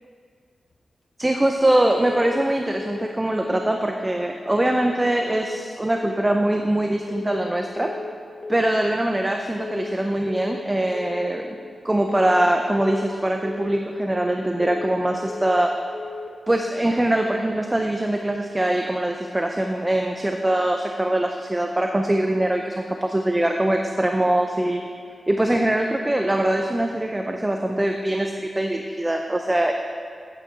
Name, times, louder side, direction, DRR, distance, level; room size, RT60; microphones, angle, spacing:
voice 1, 1.2-7.9 8.5-11.5 11.8-15.7 16.5-24.8 25.3-29.7, right 1 dB, 15° right, 3 dB, 0.4 m, -22 dB
sound 1, 2.1-2.5 2.8-3.2 3.4-3.8 4.6-5.0 5.3-5.7 5.9-6.3 7.1-7.5 7.8-8.2 8.4-8.8 9.6-10.0 10.3-10.7 10.9-11.3 12.1-12.5 12.8-13.2 13.4-13.8 14.6-15.0 15.3-15.7 15.9-16.3, left 4 dB, 55° left, 0.6 m, -35 dB
9.0 x 8.1 x 3.9 m, 2.2 s
wide cardioid pair, 120°, 0 cm